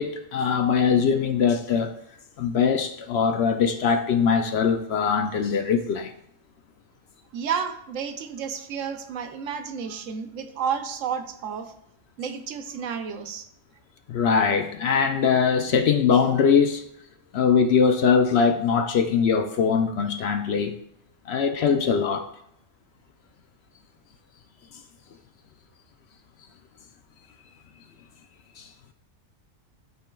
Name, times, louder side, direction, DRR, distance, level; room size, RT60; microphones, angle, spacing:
voice 1, 0.0-1.9 2.4-6.1 14.1-16.8 17.3-20.7 21.3-22.3 28.6-28.7, left 6 dB, 65° left, 6 dB, 0.7 m, -22 dB
voice 2, 7.3-11.7 12.2-13.5, right 7 dB, 75° right, 8 dB, 1.0 m, -31 dB
11.5 x 4.4 x 2.3 m, 0.74 s
omnidirectional pair, 1.3 m